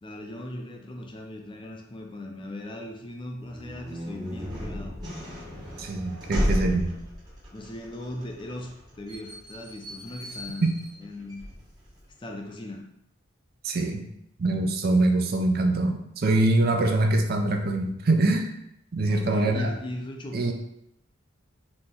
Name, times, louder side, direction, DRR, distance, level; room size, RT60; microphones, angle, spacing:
voice 1, 0.0-5.6 7.5-10.7 11.0-11.5 12.2-13.0 19.1-20.5, left 1 dB, 25° left, 2 dB, 0.4 m, -39 dB
sound 1, 3.4-12.1, equal, 20° right, 1.0 m, -34 dB
voice 2, 5.8-6.9 10.6-10.8 13.6-14.1 14.4-18.5 18.9-19.7 20.3-20.5, right 2 dB, 50° right, 4 dB, 0.4 m, -24 dB
4.0 x 2.8 x 3.6 m, 0.76 s
head